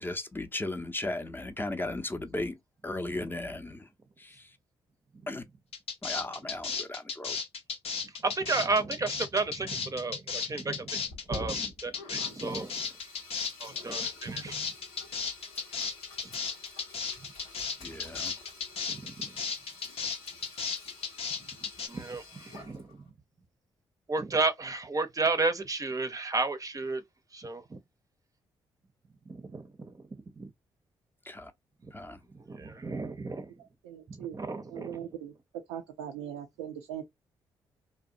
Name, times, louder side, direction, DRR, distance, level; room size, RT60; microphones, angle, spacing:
voice 1, 0.0-2.6 2.8-3.9 4.2-4.5 5.3-5.4 6.0-7.4 17.8-18.3 31.2-31.5 31.9-32.2, left 2 dB, 15° left, 0.6 m, -36 dB
sound 1, 5.7-21.9, left 5 dB, 55° left, 0.7 m, -34 dB
voice 2, 8.2-11.0 11.3-12.8 13.6-14.7 16.2-16.3 18.9-19.3 21.9-22.9 24.1-27.0 27.3-27.8 29.3-29.9 30.4-30.5 32.5-33.5 34.2-35.0, right 3 dB, 30° right, 0.6 m, -32 dB
Sink (filling or washing), 11.1-23.1, left 3 dB, 85° left, 0.9 m, -49 dB
voice 3, 33.6-34.4 34.7-35.3 35.7-37.0, right 10 dB, 85° right, 0.4 m, -40 dB
2.7 x 2.1 x 2.5 m
hypercardioid pair, 40°, 12 cm